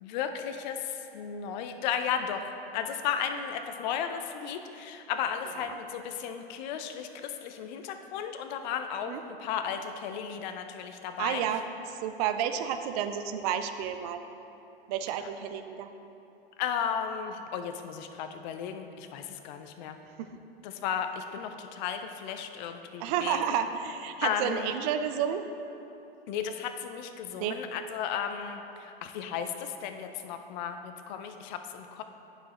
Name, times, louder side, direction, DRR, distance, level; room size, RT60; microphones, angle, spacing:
voice 1, 0.0-11.4 16.6-20.0 20.6-23.4 24.2-24.8 26.3-32.0, left 8 dB, 45° left, 7 dB, 0.5 m, -34 dB
voice 2, 11.2-11.6 11.9-14.2 14.9-15.9 20.2-20.4 23.0-25.4 27.4-27.6, right 9 dB, 40° right, 8 dB, 0.4 m, -31 dB
11.0 x 4.9 x 3.1 m, 2.9 s
hypercardioid pair, 100°, 31 cm